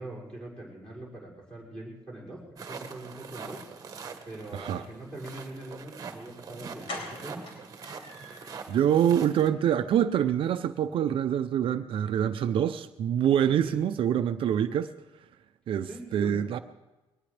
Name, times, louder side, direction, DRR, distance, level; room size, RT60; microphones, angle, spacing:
voice 1, 0.0-3.6 4.3-7.4 13.6-13.8 15.9-16.4, right 1 dB, 10° left, 6.1 m, -42 dB
sound 1, 2.6-9.5, right 5 dB, 35° right, 1.3 m, -43 dB
voice 2, 4.5-4.8 8.7-14.9 15.7-16.6, right 9 dB, 65° right, 0.6 m, -25 dB
sound 2, 6.2-6.3 6.9-8.6 9.0-9.1 9.5-9.6 9.9-10.0, left 2 dB, 65° left, 4.6 m, -42 dB
22.0 x 19.0 x 3.4 m
cardioid pair, 170°, 10 cm